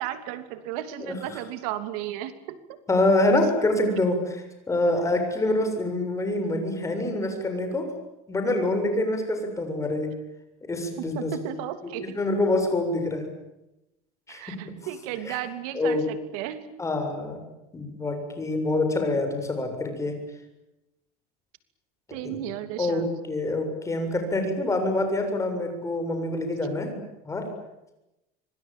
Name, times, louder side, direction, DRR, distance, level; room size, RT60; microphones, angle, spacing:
voice 1, 0.0-2.6 11.1-12.2 14.3-16.6 22.1-23.1, right 12 dB, 80° right, 11 dB, 3.0 m, -34 dB
voice 2, 2.9-7.9 8.3-10.1 10.6-11.3 12.0-13.3 14.3-14.7 15.2-15.4 15.7-16.0 16.8-17.4 17.7-20.2 22.2-22.4 22.8-27.0 27.2-27.5, left 2 dB, 15° left, 5 dB, 7.3 m, -26 dB
25.5 x 25.0 x 9.2 m, 0.93 s
cardioid pair, 140°, 19 cm